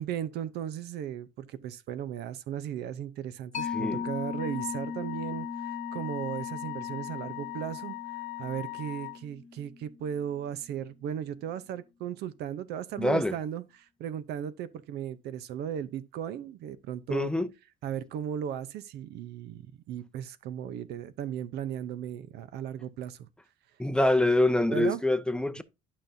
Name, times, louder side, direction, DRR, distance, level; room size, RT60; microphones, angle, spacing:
voice 1, 0.0-8.0 8.4-17.3 17.8-23.3 24.7-25.0 25.6-25.7, right 9 dB, 80° right, 0.7 m, -36 dB
Mallet percussion, 3.5-10.6, left 6 dB, 45° left, 1.0 m, -39 dB
voice 2, 3.7-4.0 13.0-13.3 17.1-17.5 23.8-25.6, left 1 dB, 5° left, 0.5 m, -25 dB
Wind instrument woodwind instrument, 4.4-9.2, left 22 dB, 75° left, 0.4 m, -39 dB
11.5 x 5.3 x 2.6 m
cardioid pair, 110°, 17 cm